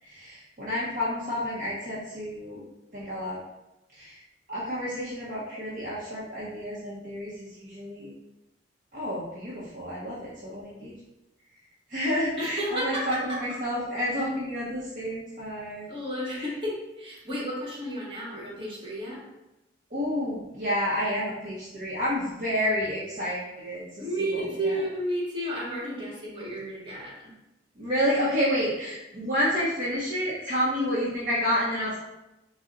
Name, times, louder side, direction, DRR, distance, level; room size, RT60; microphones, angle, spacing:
voice 1, 0.0-2.6 2.9-3.4 3.9-4.2 4.5-8.1 8.9-10.9 11.9-15.9 16.3-16.5 19.9-24.8 27.8-32.0, equal, 50° right, -8 dB, 0.7 m, -30 dB
voice 2, 12.4-13.4 15.9-19.2 24.0-27.2, right 1 dB, 30° right, -7 dB, 1.2 m, -32 dB
3.9 x 2.1 x 3.7 m, 0.96 s
head